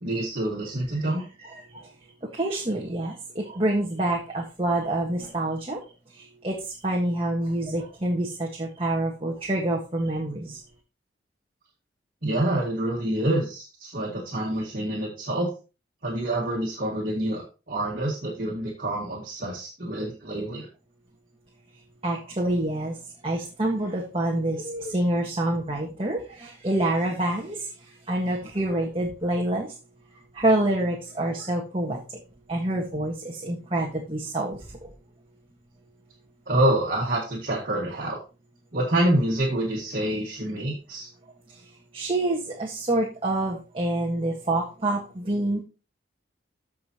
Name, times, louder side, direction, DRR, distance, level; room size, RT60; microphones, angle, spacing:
voice 1, 0.0-1.2 12.2-15.5 16.0-20.7 36.5-38.2 38.7-41.1, right 1 dB, 50° right, -3 dB, 1.9 m, -27 dB
voice 2, 2.3-5.8 6.4-6.6 6.8-10.6 22.0-22.9 23.2-27.6 28.1-29.7 30.3-32.0 32.5-34.9 41.9-45.6, right 1 dB, 30° right, -1 dB, 1.4 m, -27 dB
14.5 x 5.1 x 2.9 m, 0.32 s
head